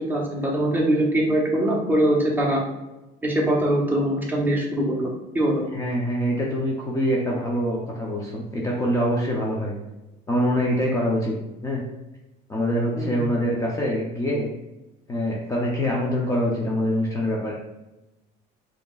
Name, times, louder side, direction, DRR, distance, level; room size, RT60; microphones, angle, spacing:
voice 1, 0.0-2.6 3.2-5.6 13.0-13.3, right 1 dB, 10° right, -3 dB, 0.9 m, -22 dB
voice 2, 5.7-9.7 10.3-11.3 11.6-11.8 12.5-14.5 15.1-17.5, equal, 15° left, -3 dB, 0.7 m, -24 dB
5.0 x 2.9 x 2.4 m, 1.0 s
cardioid pair, 130°, 19 cm